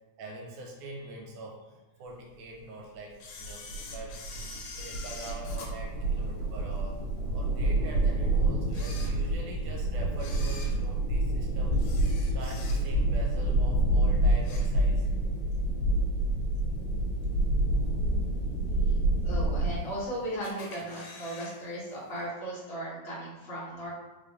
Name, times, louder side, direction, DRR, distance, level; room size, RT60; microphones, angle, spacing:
voice 1, 0.2-3.6 3.9-4.2 4.8-7.0 7.3-11.8 12.3-15.1 18.8-19.0, right 2 dB, 85° right, -1 dB, 2.1 m, -44 dB
Camera, 3.2-6.8 7.3-7.4 8.1-8.2 8.6-9.6 10.1-13.1 13.5-13.8 14.1-15.2 15.5-15.6 16.6-16.7 17.2-17.6 18.1-18.2 18.3-18.4 18.6-18.7 19.5-20.0 20.4-21.6 21.8-21.9 22.2-22.3, left 4 dB, 90° left, 2.3 m, -45 dB
sound 1, 3.4-19.8, right 1 dB, 70° right, 2.6 m, -28 dB
voice 2, 19.2-23.9, right 1 dB, 45° left, -8 dB, 0.7 m, -36 dB
5.0 x 3.4 x 2.5 m, 1.2 s
omnidirectional pair, 3.5 m